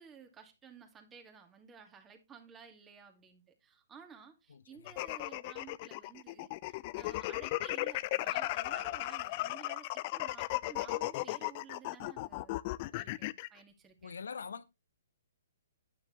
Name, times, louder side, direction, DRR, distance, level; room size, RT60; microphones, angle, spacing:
voice 1, 0.0-12.6 12.9-14.2, right 6 dB, 15° right, 2.5 m, -54 dB
voice 2, 4.5-5.0 14.0-14.6, left 6 dB, 75° left, 1.0 m, -44 dB
sound 1, 4.9-13.5, left 19 dB, 40° left, 0.5 m, -36 dB
9.7 x 9.2 x 3.1 m
hypercardioid pair, 130°, 0 cm